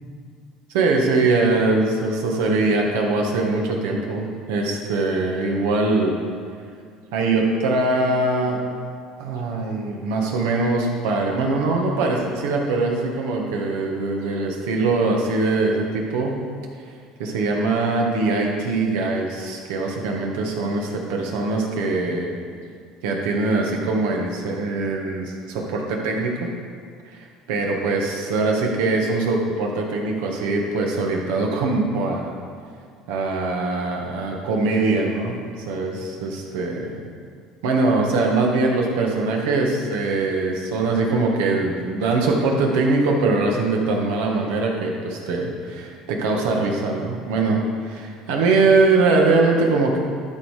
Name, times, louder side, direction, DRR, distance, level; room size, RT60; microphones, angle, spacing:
voice 1, 0.7-6.2 7.1-8.6 9.2-16.4 17.2-22.3 23.0-26.5 27.1-32.3 33.1-35.4 35.7-37.1 37.6-50.0, right 3 dB, 80° right, 0 dB, 1.5 m, -22 dB
12.0 x 4.8 x 4.9 m, 2.1 s
supercardioid pair, 85°, 0 cm